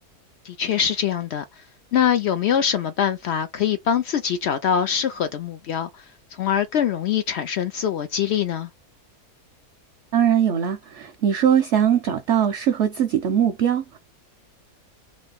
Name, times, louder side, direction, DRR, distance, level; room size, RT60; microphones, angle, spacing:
voice 1, 0.4-1.6 1.9-6.1 6.3-8.7, left 8 dB, 85° left, 0.5 m, -23 dB
voice 2, 10.1-14.0, right 9 dB, 70° right, 0.7 m, -21 dB
3.2 x 2.9 x 4.0 m
omnidirectional pair, 1.7 m